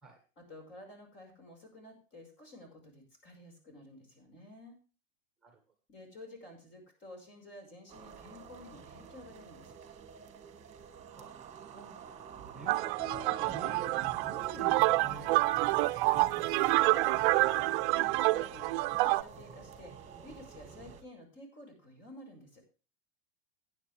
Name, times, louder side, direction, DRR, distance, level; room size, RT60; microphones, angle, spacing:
voice 1, 0.4-4.8 5.9-9.8 16.1-22.6, left 1 dB, 35° left, 3 dB, 5.7 m, -52 dB
sound 1, 7.9-21.0, right 7 dB, 20° right, 2.0 m, -49 dB
voice 2, 12.5-15.8, right 2 dB, ahead, 4 dB, 1.8 m, -48 dB
sound 2, 12.7-19.2, right 19 dB, 50° right, 0.6 m, -28 dB
15.5 x 9.8 x 3.5 m, 0.34 s
supercardioid pair, 140°, 33 cm